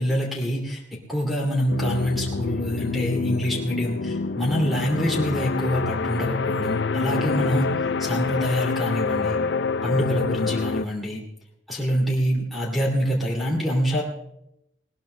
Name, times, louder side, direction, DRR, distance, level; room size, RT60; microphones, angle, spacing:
voice 1, 0.0-7.7 8.0-9.4 9.8-11.2 11.7-14.0, equal, ahead, -2 dB, 2.4 m, -25 dB
sound 1, 1.7-10.9, left 4 dB, 65° left, 0.4 m, -26 dB
20.0 x 19.5 x 2.2 m, 0.81 s
head